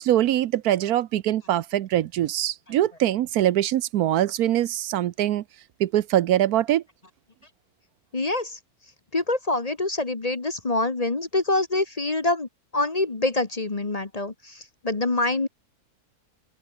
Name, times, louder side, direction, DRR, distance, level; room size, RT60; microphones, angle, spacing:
voice 1, 0.0-5.4 5.8-6.8, right 12 dB, 75° right, 1.2 m, -23 dB
voice 2, 8.1-8.6 9.1-15.5, left 2 dB, 25° left, 1.2 m, -26 dB
open air
omnidirectional pair, 1.6 m